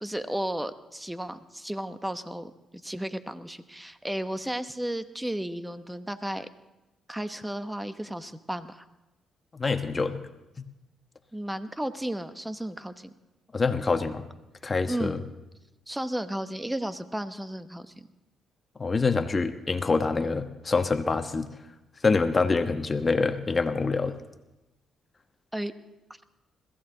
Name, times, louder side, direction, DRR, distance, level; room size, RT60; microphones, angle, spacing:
voice 1, 0.0-2.5 2.8-6.5 7.1-8.8 11.3-13.1 14.9-15.2 15.9-18.1 25.5-25.7, right 1 dB, 10° right, 11 dB, 0.9 m, -33 dB
voice 2, 9.5-10.2 10.6-10.7 13.5-14.3 14.6-15.2 18.8-21.5 22.0-24.1, left 4 dB, 30° left, 8 dB, 1.1 m, -26 dB
21.5 x 15.0 x 3.9 m, 0.98 s
cardioid pair, 80°, 0 cm